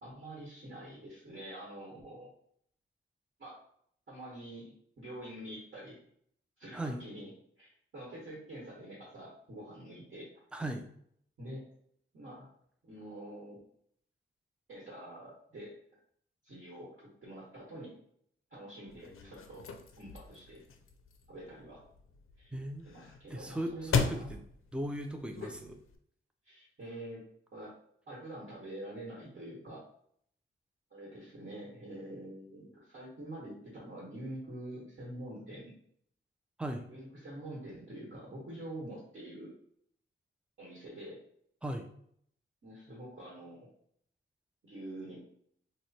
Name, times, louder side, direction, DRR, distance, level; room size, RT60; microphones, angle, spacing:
voice 1, 0.0-2.3 3.4-3.6 4.1-6.0 6.6-7.3 7.6-10.3 11.4-11.6 12.1-12.5 12.8-13.6 14.7-15.8 16.4-18.0 18.5-19.6 20.0-20.6 21.3-21.8 22.4-22.5 22.8-24.3 25.4-25.5 26.4-27.2 27.5-27.7 28.1-29.8 30.9-35.7 36.9-39.5 40.6-41.2 42.6-43.7 44.6-45.2, right 1 dB, 60° right, -6 dB, 1.2 m, -46 dB
voice 2, 10.5-10.8 22.5-22.8 23.3-24.4 24.7-25.8 36.6-36.9 41.6-41.9, right 1 dB, 5° right, 4 dB, 0.3 m, -37 dB
sound 1, 18.9-26.0, left 5 dB, 90° left, 0.4 m, -38 dB
3.0 x 2.1 x 4.0 m, 0.67 s
wide cardioid pair, 180°, 21 cm